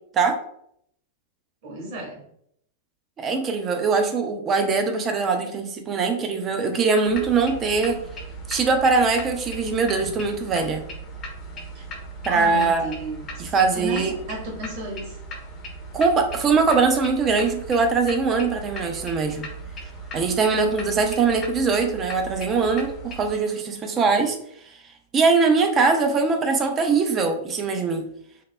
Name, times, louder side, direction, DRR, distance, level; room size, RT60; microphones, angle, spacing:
voice 1, 1.6-2.2 11.7-11.8 12.3-15.2, right 1 dB, 50° right, -3 dB, 1.2 m, -34 dB
voice 2, 3.2-8.0 8.5-10.8 12.3-12.9 13.4-14.1 15.9-19.4 20.1-24.4 25.1-28.0, right 4 dB, 25° right, 5 dB, 0.4 m, -22 dB
sound 1, 7.1-23.3, right 1 dB, 30° left, 0.6 m, -38 dB
3.4 x 2.0 x 2.2 m, 0.70 s
figure-of-eight pair, 95°, 0 cm